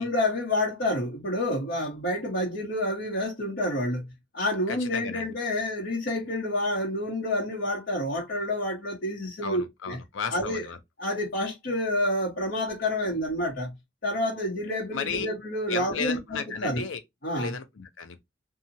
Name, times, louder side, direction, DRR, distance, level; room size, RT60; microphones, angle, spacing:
voice 1, 0.0-4.1 4.3-10.0 10.3-10.7 11.0-13.7 14.0-16.8 17.2-17.5, left 1 dB, 60° left, 1.1 m, -28 dB
voice 2, 4.7-5.3 9.4-10.8 14.9-15.3 15.7-17.0 17.4-18.2, left 5 dB, 80° left, 0.6 m, -34 dB
2.8 x 2.3 x 2.7 m
head